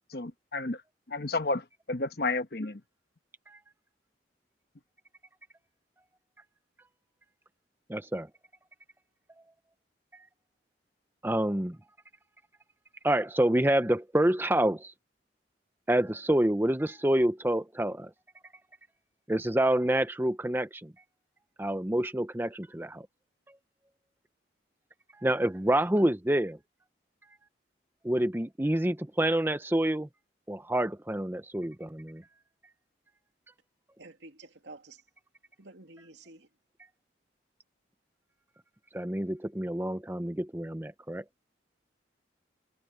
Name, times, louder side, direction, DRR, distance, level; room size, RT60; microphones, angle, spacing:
voice 1, 0.1-0.8 1.1-2.8, left 3 dB, 60° left, 1.2 m, -31 dB
voice 2, 7.9-8.3 11.2-11.8 13.0-14.9 15.9-18.1 19.3-20.9 21.6-23.1 25.2-26.6 28.0-30.1 30.5-32.2 38.9-41.2, right 1 dB, 10° right, 0.7 m, -27 dB
voice 3, 34.0-35.0 35.6-36.5, right 2 dB, 80° right, 2.6 m, -50 dB
head